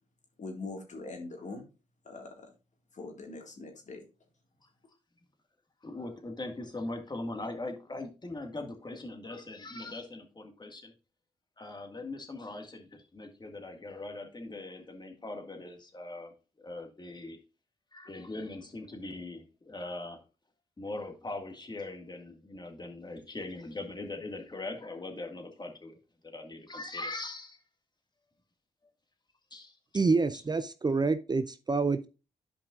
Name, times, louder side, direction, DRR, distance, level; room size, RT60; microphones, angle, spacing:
voice 1, 0.4-1.6 2.1-2.5 2.9-4.0, left 3 dB, 50° left, 2 dB, 2.0 m, -42 dB
voice 2, 5.8-10.9 11.6-17.4 17.9-20.2 20.8-26.0 26.2-27.6 29.5-30.0 30.3-30.4, left 2 dB, 30° left, 4 dB, 1.8 m, -41 dB
voice 3, 29.9-32.1, right 4 dB, 25° right, 12 dB, 0.5 m, -27 dB
11.0 x 5.1 x 2.5 m, 0.31 s
hypercardioid pair, 45°, 16 cm